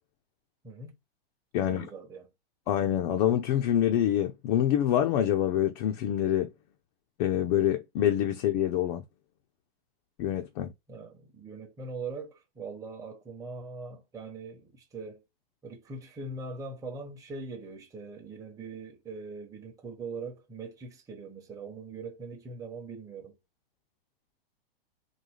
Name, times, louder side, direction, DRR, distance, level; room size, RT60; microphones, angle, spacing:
voice 1, 0.6-1.0 1.6-2.3 10.9-15.2 15.6-23.4, right 3 dB, 10° right, 1.0 m, -41 dB
voice 2, 1.5-1.9 2.7-6.5 7.2-9.0 10.2-10.7, left 11 dB, 45° left, 0.7 m, -26 dB
4.1 x 2.7 x 4.7 m
hypercardioid pair, 135°, 30 cm